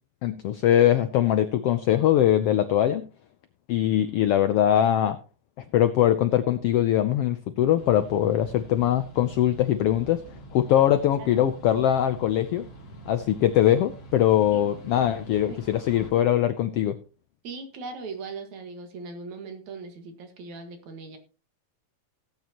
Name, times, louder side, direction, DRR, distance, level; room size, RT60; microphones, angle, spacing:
voice 1, 0.2-3.1 3.7-5.2 5.7-12.7 13.1-17.0, left 11 dB, 80° left, 11 dB, 1.3 m, -22 dB
sound 1, 7.8-16.1, right 2 dB, 55° left, 3.1 m, -45 dB
voice 2, 17.4-21.2, right 4 dB, 70° right, 6 dB, 3.1 m, -39 dB
17.0 x 8.8 x 2.9 m, 0.32 s
omnidirectional pair, 3.5 m